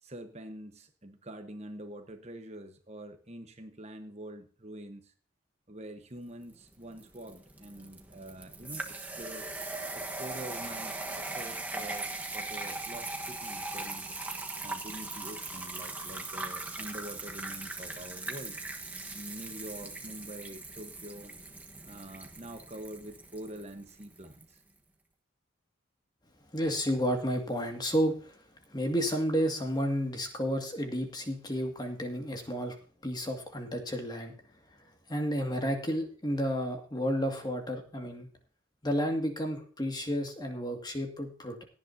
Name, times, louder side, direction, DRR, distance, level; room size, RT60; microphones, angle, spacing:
voice 1, 0.0-5.1 5.7-9.5 9.9-14.1 14.6-18.6 19.1-21.3 21.8-24.6, right 1 dB, 30° right, 6 dB, 1.2 m, -45 dB
sound 1, 6.5-24.5, right 2 dB, 10° right, 1.3 m, -40 dB
voice 2, 26.5-28.4 28.7-32.8 33.0-34.3 35.1-38.3 38.8-41.6, equal, 20° left, 4 dB, 2.1 m, -31 dB
17.0 x 10.5 x 2.8 m, 0.42 s
head